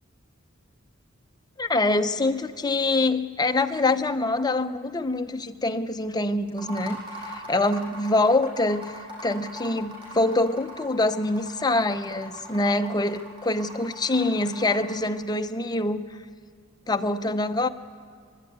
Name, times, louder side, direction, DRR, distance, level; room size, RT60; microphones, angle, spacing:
voice 1, 1.6-7.0 7.3-8.9 9.2-16.0 16.9-17.7, left 2 dB, 20° left, 8 dB, 0.8 m, -25 dB
sound 1, 6.5-15.1, equal, 25° right, 7.3 m, -41 dB
29.5 x 12.5 x 9.5 m, 2.2 s
head